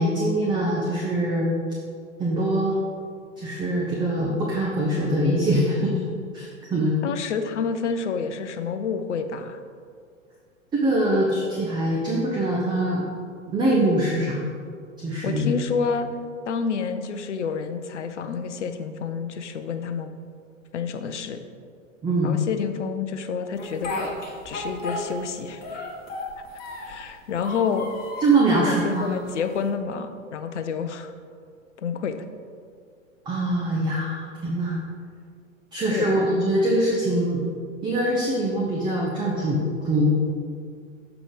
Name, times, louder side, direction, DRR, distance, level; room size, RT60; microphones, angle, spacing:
voice 1, 0.0-1.5 2.2-2.7 3.4-6.0 6.3-7.0 10.7-13.0 13.5-14.5 15.0-15.6 22.0-22.3 28.2-29.2 33.3-34.8 35.7-37.4 37.8-40.1, right 1 dB, 10° right, -3 dB, 0.7 m, -23 dB
voice 2, 7.0-9.6 15.2-16.1 16.5-20.1 20.7-21.4 22.2-23.9 24.4-25.6 26.8-27.9 28.5-31.1 31.8-32.1 35.9-36.2, left 6 dB, 60° left, 8 dB, 0.7 m, -28 dB
Speech, 23.6-25.3 25.6-27.0 27.4-28.4 28.9-29.7, left 2 dB, 25° left, 1.2 m, -34 dB
7.1 x 5.0 x 4.9 m, 2.1 s
figure-of-eight pair, 100°, 39 cm